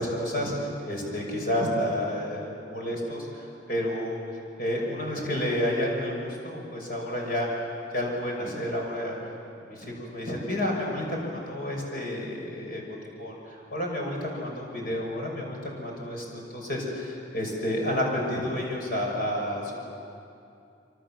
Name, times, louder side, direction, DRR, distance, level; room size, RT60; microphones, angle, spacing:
voice 1, 0.0-4.2 4.6-7.5 7.9-9.2 9.6-19.8, left 1 dB, 55° left, -1 dB, 6.5 m, -30 dB
27.0 x 25.5 x 7.6 m, 2.6 s
head